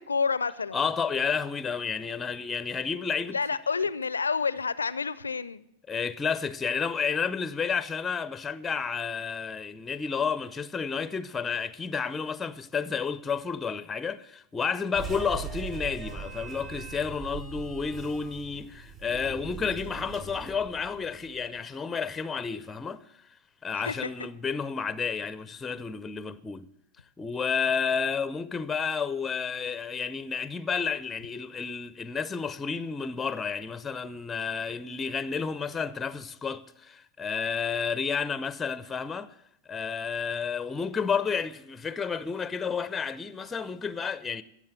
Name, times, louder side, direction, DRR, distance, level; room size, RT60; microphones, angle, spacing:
voice 1, 0.0-0.8 3.3-5.6 23.8-24.1, left 5 dB, 80° left, 0.5 m, -29 dB
voice 2, 0.7-3.4 5.9-23.0 23.6-26.7 27.2-39.3 39.7-44.4, left 6 dB, 15° left, 0.6 m, -31 dB
sound 1, 14.9-21.5, right 5 dB, 25° right, 5.6 m, -40 dB
16.0 x 7.4 x 8.0 m
figure-of-eight pair, 90°, 0 cm